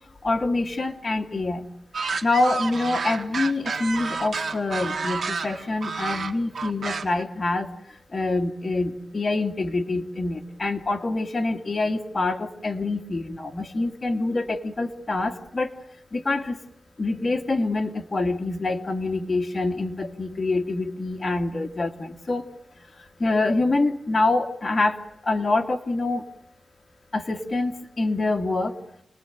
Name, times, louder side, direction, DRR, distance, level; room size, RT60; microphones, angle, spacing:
voice 1, 0.2-1.7 2.2-7.7 8.1-15.7 16.1-16.6 17.0-22.4 23.2-26.3 27.1-28.8, left 2 dB, 35° left, 3 dB, 2.3 m, -26 dB
sound 1, 1.9-7.2, right 4 dB, 90° right, 1.9 m, -30 dB
29.0 x 20.0 x 9.2 m, 0.78 s
wide cardioid pair, 170°, 0 cm